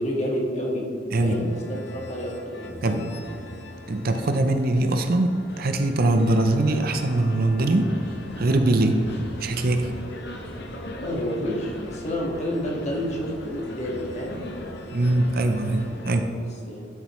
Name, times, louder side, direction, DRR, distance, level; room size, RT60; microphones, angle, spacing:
voice 1, 0.0-0.9 1.2-3.1 11.0-14.5 16.4-16.8, equal, 35° left, -2 dB, 1.8 m, -29 dB
sound 1, 1.1-16.2, left 1 dB, 60° left, 1.0 m, -39 dB
voice 2, 3.9-7.9 8.4-9.1 9.4-9.9 14.9-16.3, right 2 dB, 55° right, 6 dB, 0.6 m, -22 dB
12.0 x 6.8 x 3.1 m, 2.4 s
head